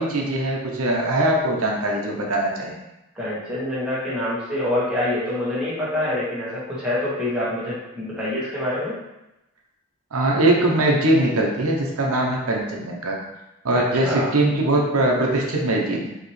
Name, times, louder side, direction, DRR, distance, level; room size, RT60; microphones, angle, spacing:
voice 1, 0.0-2.7 10.1-13.2 13.6-16.1, right 1 dB, 85° right, -1 dB, 0.8 m, -21 dB
voice 2, 3.1-8.9 13.7-14.3, left 1 dB, 5° right, -10 dB, 1.5 m, -26 dB
4.8 x 3.0 x 3.2 m, 0.93 s
head